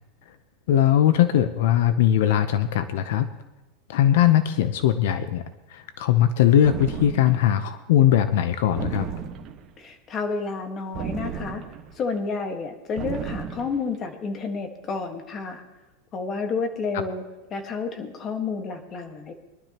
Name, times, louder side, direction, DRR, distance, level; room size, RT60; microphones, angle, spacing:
voice 1, 0.7-3.3 3.9-5.4 5.7-9.1, left 11 dB, 70° left, 11 dB, 0.7 m, -20 dB
sound 1, 6.6-7.5 8.8-9.7 10.9-12.0 13.0-13.8, right 7 dB, 30° right, 1.4 m, -33 dB
voice 2, 9.8-11.6 11.9-15.6 16.1-17.2 17.5-19.3, left 4 dB, 25° left, 5 dB, 1.5 m, -30 dB
23.0 x 12.0 x 3.0 m, 1.1 s
supercardioid pair, 160°, 0 cm